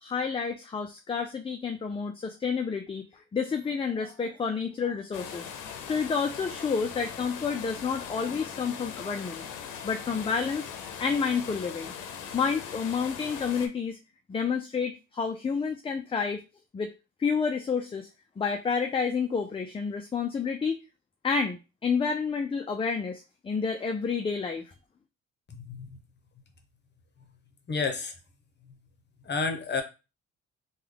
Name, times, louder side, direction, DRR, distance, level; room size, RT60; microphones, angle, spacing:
voice 1, 0.0-5.5 5.9-9.4 9.8-10.7 11.0-11.9 12.3-14.0 14.3-16.4 16.7-16.9 17.2-18.1 18.4-20.8 21.2-24.7, left 5 dB, 20° left, 5 dB, 0.4 m, -29 dB
sound 1, 5.1-13.7, left 7 dB, 90° left, 0.6 m, -40 dB
voice 2, 25.6-26.0 27.7-28.1 29.2-29.8, left 4 dB, 35° left, 5 dB, 0.9 m, -30 dB
3.2 x 2.3 x 3.6 m, 0.29 s
cardioid pair, 90°, 30 cm